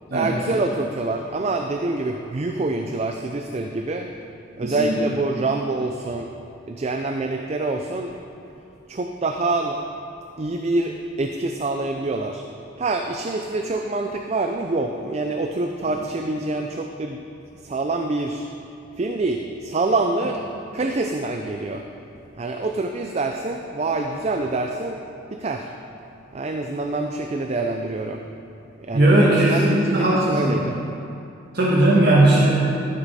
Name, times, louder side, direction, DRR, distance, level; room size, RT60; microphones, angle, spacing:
voice 1, 0.1-4.1 4.6-6.3 6.7-8.1 8.9-9.8 10.4-12.4 12.8-17.2 17.5-18.5 19.0-20.4 20.7-21.8 22.4-25.0 25.3-25.7 26.3-28.2 28.8-30.8, right 2 dB, 30° right, 4 dB, 0.4 m, -26 dB
voice 2, 4.6-5.0 28.9-30.6 31.5-32.5, right 1 dB, 50° right, -6 dB, 1.3 m, -17 dB
13.0 x 8.1 x 4.2 m, 2.7 s
head